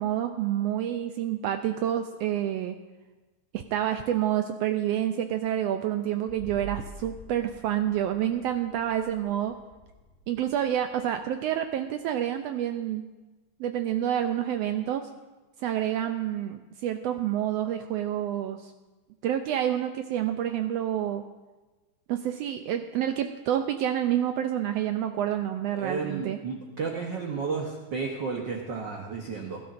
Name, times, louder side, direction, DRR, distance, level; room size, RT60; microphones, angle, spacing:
voice 1, 0.0-2.8 3.5-9.5 10.3-13.0 13.6-15.1 15.6-18.7 19.2-21.2 22.1-26.4, right 11 dB, 80° right, 7 dB, 1.4 m, -28 dB
sound 1, 6.3-11.8, right 4 dB, 20° left, 1.7 m, -46 dB
voice 2, 25.7-29.6, right 4 dB, 60° right, 1 dB, 1.2 m, -32 dB
20.0 x 12.0 x 2.6 m, 1.2 s
omnidirectional pair, 3.3 m